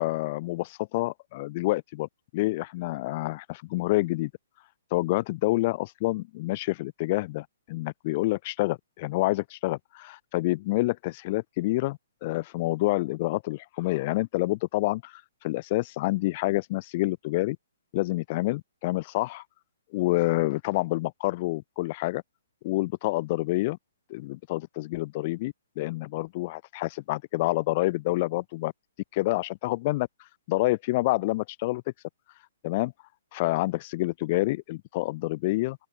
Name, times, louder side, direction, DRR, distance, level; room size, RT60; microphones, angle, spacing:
voice 1, 0.0-4.3 4.9-17.6 17.9-19.4 19.9-22.2 22.6-23.8 24.1-28.7 29.1-30.1 30.5-31.8 32.6-32.9 33.3-35.8, left 20 dB, 30° left, 6.4 m, -28 dB
open air
hypercardioid pair, 170°, 0 cm